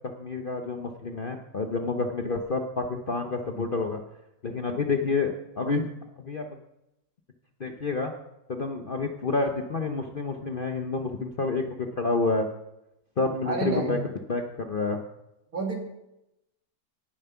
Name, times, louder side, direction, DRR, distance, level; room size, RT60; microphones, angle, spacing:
voice 1, 0.0-4.0 4.4-5.9 6.2-6.5 7.6-8.1 8.5-12.5 13.2-14.0 14.3-15.0, left 3 dB, 40° left, 4 dB, 0.8 m, -29 dB
voice 2, 13.5-14.0 15.5-15.7, right 3 dB, 55° right, 1 dB, 2.9 m, -29 dB
18.0 x 7.4 x 5.7 m, 0.88 s
omnidirectional pair, 1.8 m